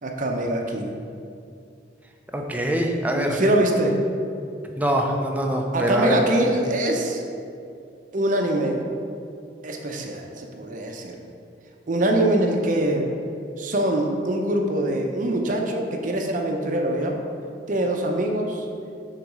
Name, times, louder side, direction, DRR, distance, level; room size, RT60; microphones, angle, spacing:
voice 1, 0.0-0.9 3.1-4.0 5.7-7.2 8.1-8.8 9.6-11.2 11.9-13.1 13.6-17.2 17.7-18.7, right 1 dB, 45° right, 2 dB, 0.7 m, -23 dB
voice 2, 2.3-3.4 4.8-6.2, right 1 dB, 10° right, 1 dB, 0.5 m, -23 dB
6.7 x 4.0 x 4.8 m, 2.5 s
head